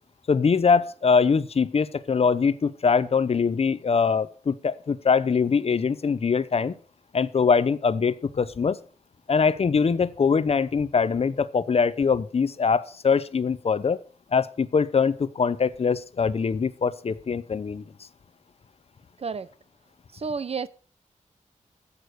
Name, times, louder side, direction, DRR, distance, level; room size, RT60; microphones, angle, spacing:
voice 1, 0.3-6.7 7.1-8.8 9.3-14.0 14.3-17.8, left 5 dB, 50° left, 0.7 m, -23 dB
voice 2, 20.1-20.7, right 5 dB, 50° right, 0.7 m, -30 dB
14.0 x 8.3 x 6.5 m
wide cardioid pair, 160°, 14 cm